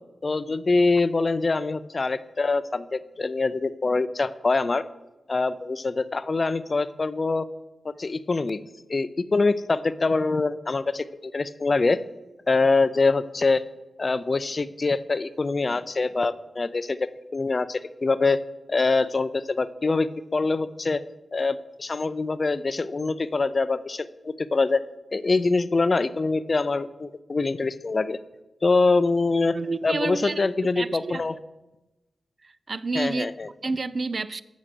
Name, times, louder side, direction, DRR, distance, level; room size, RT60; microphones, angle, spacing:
voice 1, 0.2-4.8 5.3-7.5 7.8-8.6 8.9-12.0 12.5-13.6 14.0-18.4 18.7-21.0 21.3-24.8 25.1-28.2 28.6-29.6 29.8-31.4 32.9-33.5, left 3 dB, 45° left, 15 dB, 0.4 m, -24 dB
voice 2, 29.5-30.5 30.7-31.2 32.4-33.3 33.6-34.4, right 3 dB, 50° right, 16 dB, 0.3 m, -29 dB
7.3 x 6.2 x 6.7 m, 1.0 s
cardioid pair, 60°, 0 cm